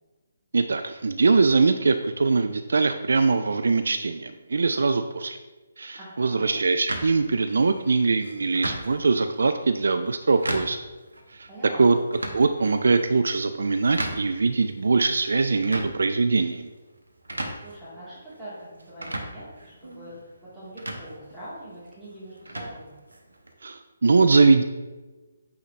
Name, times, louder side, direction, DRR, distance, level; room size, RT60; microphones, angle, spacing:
voice 1, 0.5-5.4 5.8-10.8 11.3-11.5 11.8-12.0 12.3-16.7 23.6-24.6, right 4 dB, 55° right, 8 dB, 0.3 m, -22 dB
voice 2, 6.0-6.5 11.5-11.9 17.6-22.9, right 1 dB, ahead, -14 dB, 2.1 m, -42 dB
sound 1, 6.9-23.5, right 1 dB, 75° right, 0.9 m, -38 dB
8.6 x 3.9 x 3.2 m, 1.2 s
figure-of-eight pair, 140°, 0 cm